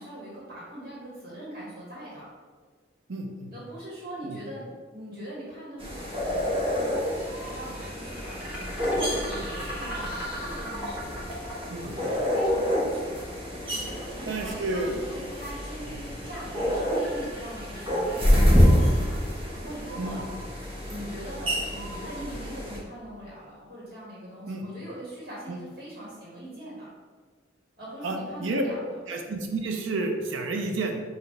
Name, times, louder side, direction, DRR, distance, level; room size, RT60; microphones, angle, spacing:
voice 1, 0.0-2.3 3.5-7.1 7.4-11.3 11.8-13.3 13.7-20.2 20.9-26.9 27.8-28.8, right 1 dB, 55° right, -7 dB, 1.5 m, -42 dB
voice 2, 3.1-3.5 4.3-4.4 11.7-11.9 14.3-14.9 20.0-20.2 24.5-24.7 25.5-25.6 28.0-28.7 29.1-31.0, right 2 dB, 85° right, 3 dB, 0.6 m, -30 dB
sound 1, 5.8-22.8, equal, 30° right, 1.1 m, -27 dB
sound 2, 6.8-22.8, equal, 10° right, 1.2 m, -41 dB
6.4 x 2.6 x 3.2 m, 1.5 s
head